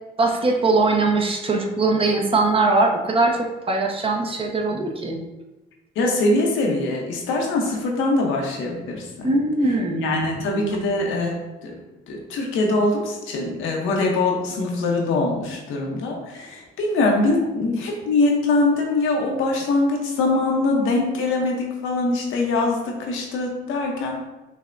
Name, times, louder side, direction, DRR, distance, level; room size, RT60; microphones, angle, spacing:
voice 1, 0.2-5.2 9.2-10.4, right 3 dB, 30° right, 2 dB, 0.6 m, -21 dB
voice 2, 6.0-9.3 10.0-11.4 11.6-11.7 12.1-24.3, left 2 dB, 90° left, 0 dB, 0.8 m, -23 dB
5.5 x 2.1 x 2.5 m, 1.1 s
cardioid pair, 90°, 20 cm